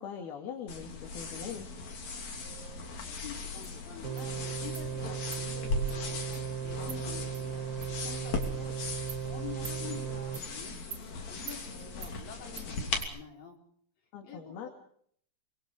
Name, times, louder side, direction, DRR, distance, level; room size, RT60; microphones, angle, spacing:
voice 1, 0.0-1.7 14.1-14.7, left 7 dB, 80° left, 3 dB, 4.1 m, -41 dB
sound 1, 0.7-13.0, left 3 dB, 50° left, 4.2 m, -38 dB
voice 2, 3.1-6.2 6.6-8.8 9.2-13.6 14.2-14.7, left 6 dB, 65° left, 0 dB, 6.6 m, -47 dB
Insect, 3.6-3.7 4.2-4.3 4.7-4.9 5.3-5.4 5.9-6.0 6.3-6.4 6.9-7.0 7.3-7.4 7.8-7.9 8.4-8.5 9.1-9.2 9.6-9.8 10.3-10.5 10.9-11.0 11.5-11.6 12.0-12.1 12.6-12.7 13.0-13.1, right 8 dB, 50° right, 2.3 m, -44 dB
sound 2, 4.0-10.4, right 9 dB, 85° right, 3.7 m, -37 dB
25.5 x 24.5 x 4.9 m, 0.63 s
omnidirectional pair, 4.3 m